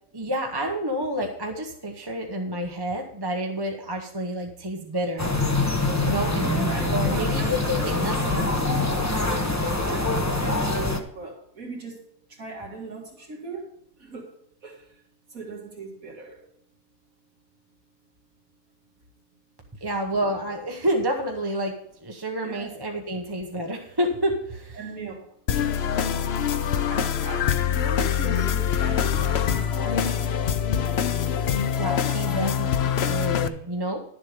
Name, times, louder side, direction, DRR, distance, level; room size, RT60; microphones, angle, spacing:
voice 1, 0.1-5.3 6.0-8.5 19.8-21.7 22.0-24.8 31.8-34.0, equal, 20° right, 2 dB, 0.9 m, -29 dB
sound 1, 5.2-11.0, left 2 dB, 15° left, 0.9 m, -24 dB
voice 2, 6.4-9.0 9.8-10.3 11.1-12.0 12.3-13.7 14.0-14.3 14.6-15.0 15.3-16.4 19.8-19.9 22.4-22.7 24.8-25.2 26.8-30.4 30.7-30.8 31.7-31.8, right 3 dB, 65° right, -1 dB, 2.4 m, -38 dB
sound 2, 25.5-33.5, left 8 dB, 55° left, 0.8 m, -24 dB
11.5 x 7.3 x 5.0 m, 0.71 s
omnidirectional pair, 1.5 m